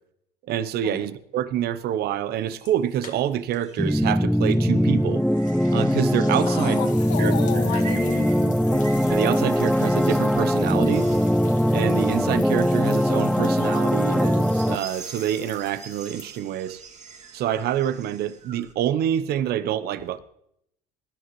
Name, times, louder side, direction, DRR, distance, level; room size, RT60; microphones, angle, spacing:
voice 1, 0.5-5.2 5.7-6.8 7.2-7.8 9.1-11.1 11.7-16.8 17.3-20.2, right 10 dB, 55° right, 0.8 m, -27 dB
sound 1, 1.9-18.7, right 5 dB, 35° right, 1.9 m, -45 dB
sound 2, 2.5-3.6 3.9-4.0 5.4-16.7, left 7 dB, 40° left, 1.8 m, -45 dB
sound 3, 3.8-14.8, equal, ahead, 0.4 m, -21 dB
voice 2, 6.5-8.9, left 10 dB, 60° left, 1.7 m, -32 dB
19.5 x 11.0 x 3.2 m
hypercardioid pair, 75°, 20 cm